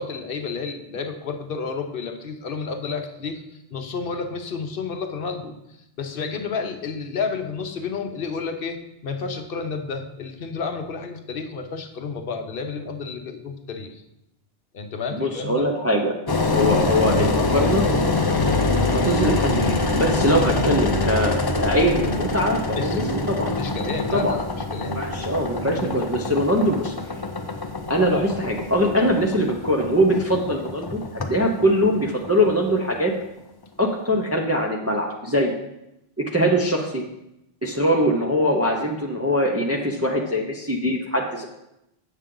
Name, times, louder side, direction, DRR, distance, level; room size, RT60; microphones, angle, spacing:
voice 1, 0.0-5.6 6.0-14.0 14.7-15.7 22.8-23.0 23.6-25.0, left 5 dB, 65° left, 6 dB, 0.9 m, -31 dB
voice 2, 15.1-16.1 16.4-17.8 18.9-23.5 24.1-24.4 24.9-26.9 27.9-33.1 33.8-35.5 36.2-37.0 37.6-41.5, equal, 15° right, 0 dB, 0.6 m, -22 dB
Engine, 16.3-33.2, left 3 dB, 30° left, 0.5 m, -25 dB
sound 1, 18.7-26.7, right 2 dB, 70° right, 1.0 m, -33 dB
8.1 x 6.6 x 3.7 m, 0.86 s
omnidirectional pair, 1.0 m